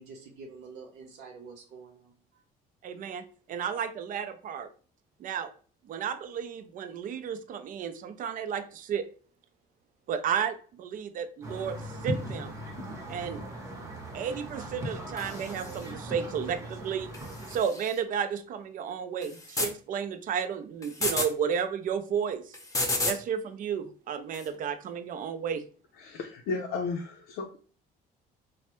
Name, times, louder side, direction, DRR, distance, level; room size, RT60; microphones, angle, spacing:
voice 1, 0.0-2.4, right 4 dB, 85° right, -2 dB, 0.7 m, -47 dB
voice 2, 2.8-3.2 3.5-4.7 5.2-5.5 5.9-9.0 10.1-12.6 13.1-13.4 14.1-17.1 17.5-22.6 23.0-25.6, right 7 dB, 55° right, 9 dB, 0.4 m, -32 dB
sound 1, 11.4-17.6, equal, 15° right, 0.8 m, -38 dB
sound 2, 15.2-15.9 17.1-18.0 19.2-19.7 20.8-21.3 22.5-23.2 24.3-24.5, left 2 dB, 20° left, 0.7 m, -32 dB
voice 3, 26.0-27.6, left 4 dB, 80° left, 2 dB, 0.5 m, -34 dB
3.2 x 2.1 x 3.0 m, 0.41 s
cardioid pair, 110°, 17 cm